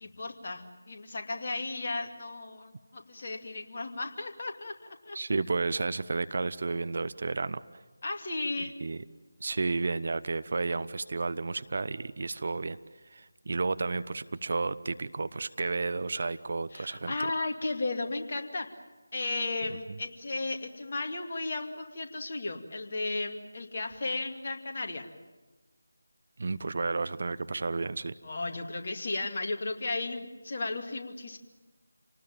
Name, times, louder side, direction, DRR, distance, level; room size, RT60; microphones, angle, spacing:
voice 1, 0.0-5.2 8.0-8.7 16.7-18.7 19.1-25.1 28.2-31.4, left 2 dB, 40° left, 3 dB, 2.4 m, -35 dB
voice 2, 5.1-7.6 8.6-9.0 9.4-12.8 13.1-17.1 26.4-28.1, right 3 dB, 45° right, 14 dB, 0.7 m, -32 dB
28.0 x 19.5 x 9.0 m, 1.2 s
figure-of-eight pair, 160°, 0 cm